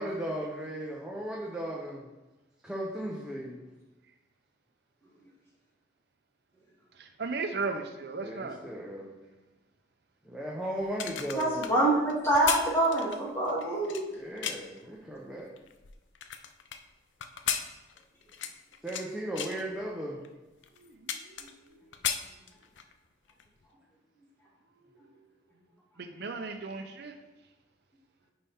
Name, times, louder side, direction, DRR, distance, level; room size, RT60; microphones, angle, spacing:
voice 1, 0.0-2.1 2.6-3.6 8.2-9.1 10.2-11.6 14.0-15.5 18.8-20.2, right 1 dB, 5° right, -4 dB, 0.8 m, -36 dB
voice 2, 7.0-8.6 20.8-20.9 26.0-27.1, right 4 dB, 60° right, 6 dB, 0.6 m, -35 dB
sound 1, 10.8-14.8 15.4-16.8 17.2-19.1 19.4-19.6 20.2-20.3 20.6-21.7 21.9-22.9 23.3-23.5, left 8 dB, 80° left, 0.5 m, -35 dB
voice 3, 11.3-11.9 12.2-14.0, right 1 dB, 15° left, -5 dB, 1.9 m, -26 dB
9.8 x 4.3 x 3.5 m, 1.1 s
head